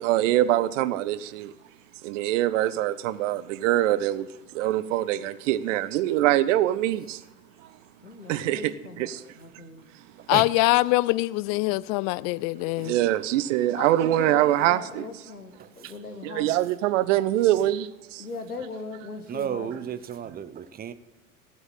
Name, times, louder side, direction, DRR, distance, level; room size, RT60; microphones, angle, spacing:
voice 1, 0.0-1.5 2.0-4.3 4.5-7.2 8.3-9.2 12.8-15.0 16.2-18.2, right 14 dB, 55° right, 0.8 m, -24 dB
voice 2, 8.0-9.8 13.7-16.5 18.2-19.7, left 3 dB, 90° left, 1.5 m, -39 dB
voice 3, 10.3-13.0, left 21 dB, 35° left, 0.4 m, -23 dB
voice 4, 15.6-15.9 19.3-20.9, right 9 dB, 20° right, 0.7 m, -34 dB
14.5 x 7.9 x 7.4 m
figure-of-eight pair, 80°, 44 cm